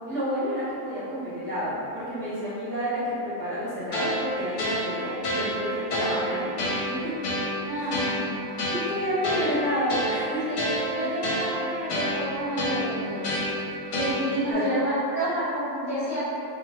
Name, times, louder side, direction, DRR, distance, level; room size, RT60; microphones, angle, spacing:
voice 1, 0.1-6.5 6.8-7.1 7.8-8.0 8.7-10.6 14.2-14.7, equal, ahead, -15 dB, 0.7 m, -30 dB
sound 1, 3.9-14.5, equal, 80° left, 1.1 m, -29 dB
voice 2, 7.6-8.4 10.5-13.3 13.9-16.2, right 1 dB, 70° right, -12 dB, 0.3 m, -29 dB
2.8 x 2.2 x 2.9 m, 2.6 s
omnidirectional pair, 1.7 m